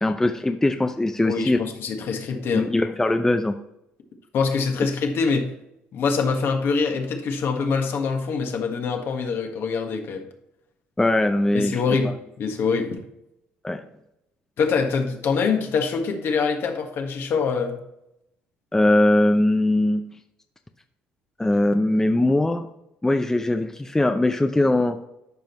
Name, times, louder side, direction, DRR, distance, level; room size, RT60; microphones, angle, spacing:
voice 1, 0.0-1.6 2.5-3.5 11.0-11.8 13.6-13.8 18.7-20.0 21.4-22.7 23.0-25.0, left 1 dB, 10° left, 6 dB, 0.6 m, -21 dB
voice 2, 1.2-2.7 4.3-5.5 5.9-10.2 11.5-13.0 14.6-17.8, left 5 dB, 60° left, 3 dB, 1.5 m, -24 dB
12.0 x 5.2 x 3.1 m, 0.82 s
supercardioid pair, 80°, 5 cm